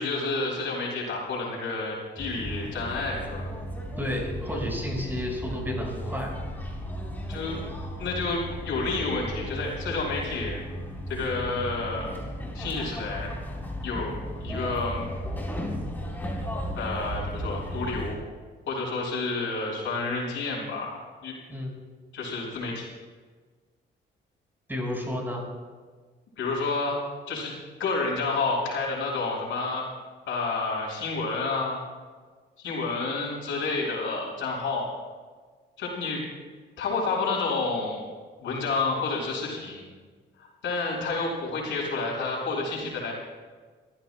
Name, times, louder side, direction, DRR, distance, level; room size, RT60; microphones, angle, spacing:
voice 1, 0.0-3.5 7.3-7.6 8.0-10.6 11.1-12.1 12.5-13.3 13.8-15.1 16.7-18.2 18.7-21.3 22.1-22.9 26.4-27.0 27.3-27.5 27.8-29.9 30.3-31.8 32.6-34.9 35.8-36.3 36.8-38.0 38.4-39.9 40.4-43.1, left 3 dB, 75° left, -2 dB, 5.2 m, -30 dB
sound 1, 2.2-18.2, equal, 10° left, 3.8 m, -35 dB
voice 2, 4.0-6.3 21.5-21.8 24.7-25.4, left 1 dB, 10° right, -1 dB, 4.9 m, -31 dB
29.5 x 14.5 x 2.2 m, 1.5 s
cardioid pair, 90°, 20 cm